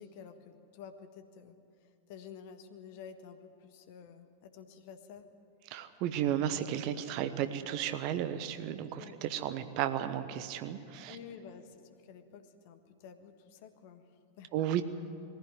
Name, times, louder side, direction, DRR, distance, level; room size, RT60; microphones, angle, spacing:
voice 1, 0.0-5.3 9.0-9.2 11.1-14.5, left 7 dB, 50° left, 8 dB, 1.5 m, -51 dB
voice 2, 5.7-11.2 14.5-14.8, right 10 dB, 45° right, 10 dB, 1.1 m, -33 dB
22.0 x 15.5 x 9.5 m, 2.5 s
figure-of-eight pair, 90°, 0 cm